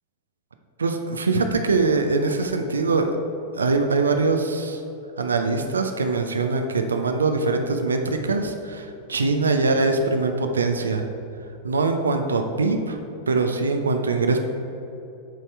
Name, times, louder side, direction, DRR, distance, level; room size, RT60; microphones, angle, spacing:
voice 1, 0.8-3.1 3.5-4.8 5.2-11.1 11.6-13.0 13.3-14.4, right 3 dB, 70° right, 5 dB, 0.5 m, -23 dB
8.1 x 4.2 x 4.5 m, 2.8 s
figure-of-eight pair, 90°, 0 cm